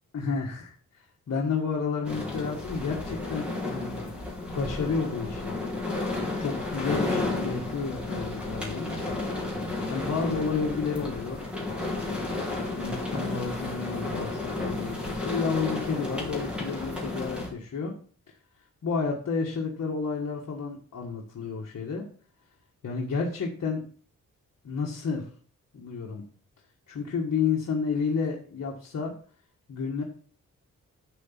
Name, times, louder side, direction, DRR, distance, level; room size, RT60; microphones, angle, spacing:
voice 1, 0.1-4.0 4.5-5.6 6.4-8.9 9.9-11.5 12.5-17.9 18.3-18.4 18.8-22.1 22.8-23.8 24.6-25.3 25.7-26.2 26.9-29.1 29.7-30.0, left 5 dB, 55° left, -2 dB, 1.6 m, -31 dB
sound 1, 2.0-17.5, left 2 dB, 5° right, 2.7 m, -32 dB
11.0 x 4.0 x 7.5 m, 0.43 s
wide cardioid pair, 180°, 32 cm